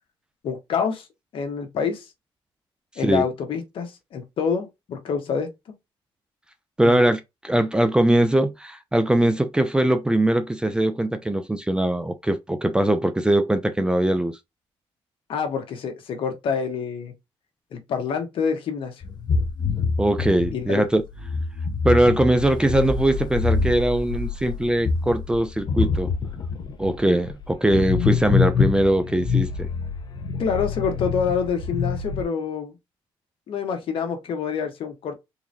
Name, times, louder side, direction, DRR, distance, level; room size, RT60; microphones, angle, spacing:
voice 1, 0.4-1.1 1.3-2.1 3.0-5.5 6.8-7.0 15.3-17.1 17.7-19.0 20.5-20.8 30.4-32.7 33.5-35.1, left 6 dB, 65° left, 1.4 m, -27 dB
voice 2, 6.8-14.4 20.0-21.0 21.8-26.1 26.8-29.7, right 1 dB, 10° right, 0.5 m, -21 dB
sound 1, 19.0-32.2, left 5 dB, 45° left, 0.8 m, -26 dB
3.9 x 2.9 x 2.7 m
cardioid pair, 105°, 10 cm